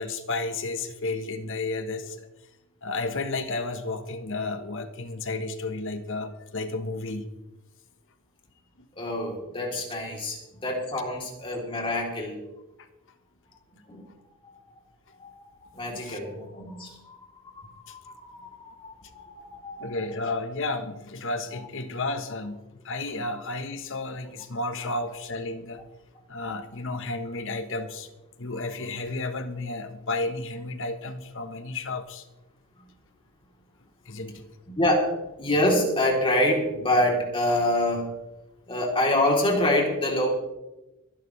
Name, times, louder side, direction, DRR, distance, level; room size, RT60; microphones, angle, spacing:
voice 1, 0.0-2.3 2.8-7.2 9.7-9.9 12.8-12.9 15.9-16.2 17.9-18.0 19.0-19.1 19.8-25.8 26.3-28.1 28.4-32.3 34.0-34.5, left 2 dB, 60° left, 9 dB, 1.4 m, -32 dB
voice 2, 9.0-12.4 13.9-14.1 15.2-17.2 17.6-19.9 26.5-26.6 28.5-28.6 34.8-38.1 38.7-40.3, left 1 dB, 25° left, -1 dB, 3.7 m, -26 dB
23.0 x 11.5 x 3.4 m, 1.0 s
head